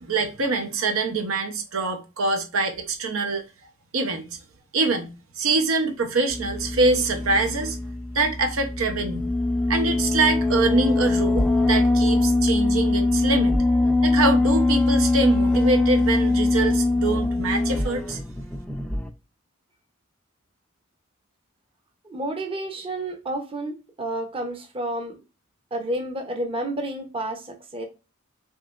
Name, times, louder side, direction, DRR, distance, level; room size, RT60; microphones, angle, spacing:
voice 1, 0.0-3.4 3.9-4.3 4.7-7.8 8.1-9.3 9.7-13.6 14.0-18.2, right 3 dB, 80° right, 0.7 m, -24 dB
sound 1, 6.3-19.1, left 2 dB, 5° left, 0.4 m, -22 dB
voice 2, 22.0-25.2 25.7-27.9, right 1 dB, 25° right, 0.7 m, -30 dB
5.4 x 2.8 x 2.4 m
head